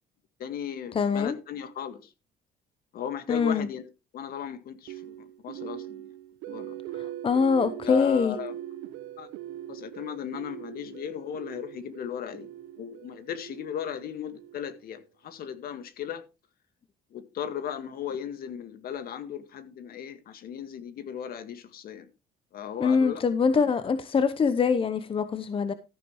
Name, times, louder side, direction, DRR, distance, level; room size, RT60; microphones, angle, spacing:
voice 1, 0.4-2.1 2.9-3.9 4.1-6.1 6.5-6.8 7.8-8.6 9.2-9.3 9.7-12.5 12.8-16.2 17.1-22.1 22.5-23.2 23.6-23.7, left 8 dB, 60° left, 1.9 m, -36 dB
voice 2, 0.9-1.3 3.3-3.7 6.9-8.4 22.8-25.7, left 5 dB, 30° left, 0.9 m, -24 dB
sound 1, 4.9-15.0, right 13 dB, 90° right, 1.0 m, -41 dB
14.0 x 9.2 x 3.2 m
cardioid pair, 110°, 17 cm